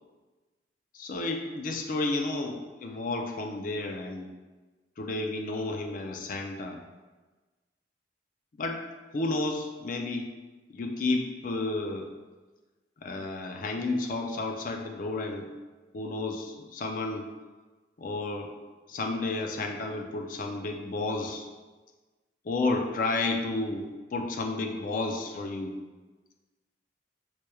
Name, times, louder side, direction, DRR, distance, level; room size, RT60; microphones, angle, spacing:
voice 1, 0.9-4.3 5.0-6.8 8.6-8.8 9.1-10.3 10.7-12.1 13.0-15.5 15.9-17.3 18.0-18.5 18.9-21.5 22.4-25.8, left 2 dB, 50° left, 3 dB, 0.4 m, -31 dB
4.4 x 3.2 x 2.2 m, 1.3 s
head